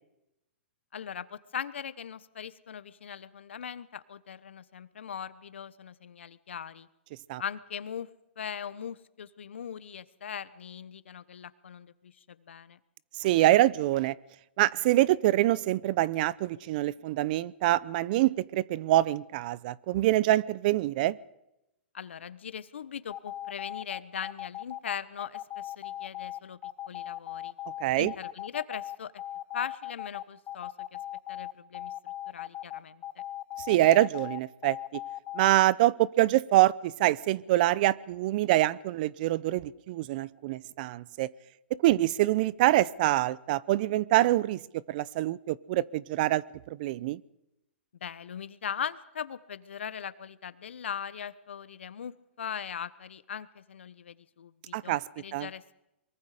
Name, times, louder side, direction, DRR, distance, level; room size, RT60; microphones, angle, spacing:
voice 1, 0.9-6.9 7.4-8.1 8.4-12.8 21.9-26.6 26.9-27.5 28.0-29.2 29.5-31.0 31.3-33.0 48.0-55.8, left 8 dB, 80° left, 1.1 m, -40 dB
voice 2, 13.2-14.1 14.6-21.2 27.8-28.1 33.7-34.8 35.3-41.3 41.7-44.6 44.9-46.4 46.8-47.2 54.7-55.0 55.3-55.5, right 15 dB, 50° right, 0.6 m, -25 dB
sound 1, 23.1-35.5, left 13 dB, 25° left, 0.8 m, -38 dB
23.5 x 23.0 x 5.0 m
hypercardioid pair, 130°, 6 cm